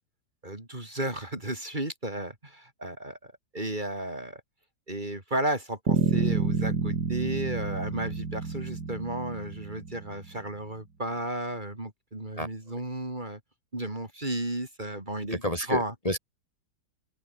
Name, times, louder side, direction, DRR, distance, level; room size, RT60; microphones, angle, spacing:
voice 1, 0.4-4.4 4.9-13.4 13.7-15.9, right 1 dB, 25° right, 3.8 m, -33 dB
Bass guitar, 5.9-10.3, right 4 dB, 75° right, 3.6 m, -29 dB
voice 2, 15.3-16.2, left 1 dB, 20° left, 3.0 m, -29 dB
open air
omnidirectional pair, 1.8 m